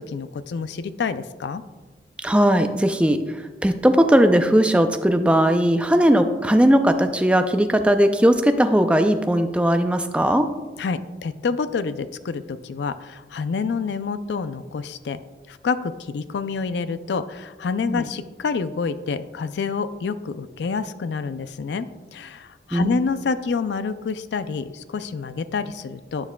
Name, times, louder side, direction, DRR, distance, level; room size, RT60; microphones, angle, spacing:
voice 1, 0.0-1.6 10.8-15.2 15.5-26.3, left 5 dB, 85° left, 13 dB, 0.4 m, -28 dB
voice 2, 2.2-10.5 17.9-18.0 22.7-23.0, equal, 5° right, 7 dB, 0.4 m, -18 dB
11.5 x 7.2 x 2.2 m, 1.3 s
head